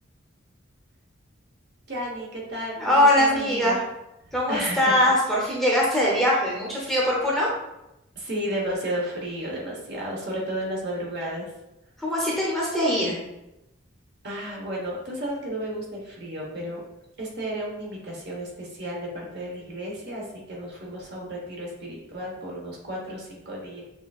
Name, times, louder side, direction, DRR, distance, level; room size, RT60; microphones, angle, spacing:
voice 1, 1.9-3.8 4.2-5.0 8.1-11.5 14.2-16.8 17.2-23.8, right 1 dB, 55° right, -3 dB, 1.1 m, -33 dB
voice 2, 2.8-3.8 4.3-7.5 12.0-13.2, left 1 dB, ahead, -5 dB, 0.8 m, -22 dB
6.6 x 2.6 x 2.4 m, 0.91 s
head